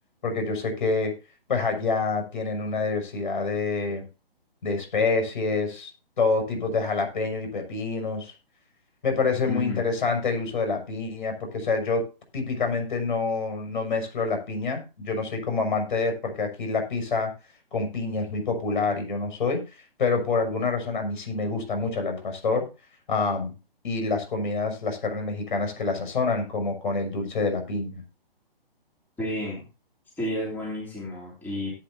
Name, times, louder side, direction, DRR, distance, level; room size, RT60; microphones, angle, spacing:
voice 1, 0.2-1.1 1.5-4.0 4.6-5.9 6.2-8.3 9.0-12.0 12.3-17.3 17.7-19.6 20.0-22.7 23.1-23.5 23.8-28.0, left 4 dB, 55° left, 5 dB, 6.2 m, -27 dB
voice 2, 9.5-9.8 29.2-29.6 30.2-31.7, left 1 dB, 5° left, -4 dB, 3.1 m, -31 dB
17.5 x 9.0 x 2.7 m, 0.31 s
figure-of-eight pair, 140°, 29 cm